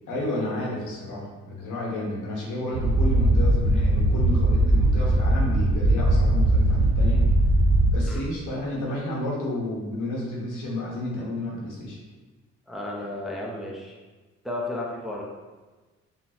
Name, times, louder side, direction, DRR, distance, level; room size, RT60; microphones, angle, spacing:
voice 1, 0.1-7.3 7.9-12.0, left 1 dB, 80° left, -4 dB, 1.3 m, -31 dB
sound 1, 2.7-7.9, right 1 dB, 85° right, 0.7 m, -20 dB
voice 2, 12.7-14.0 14.4-15.2, left 1 dB, ahead, -3 dB, 0.7 m, -33 dB
4.0 x 3.9 x 2.9 m, 1.3 s
cardioid pair, 90°, 30 cm